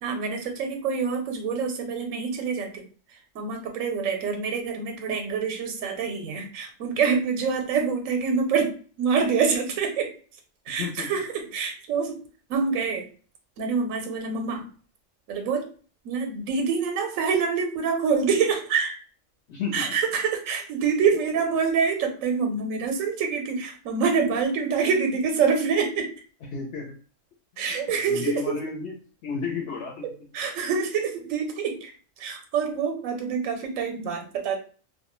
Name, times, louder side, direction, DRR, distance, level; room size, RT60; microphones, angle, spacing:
voice 1, 0.0-2.8 3.3-10.1 10.7-12.2 12.5-13.1 13.6-14.7 15.3-15.7 16.0-19.0 19.7-26.1 27.6-28.3 30.0-31.9 32.2-34.6, right 5 dB, 90° right, 4 dB, 1.0 m, -26 dB
voice 2, 19.5-19.8 26.5-26.9 27.6-27.7 28.1-29.0 29.2-30.0, left 5 dB, 65° left, -1 dB, 0.8 m, -31 dB
2.4 x 2.1 x 2.9 m, 0.41 s
omnidirectional pair, 1.3 m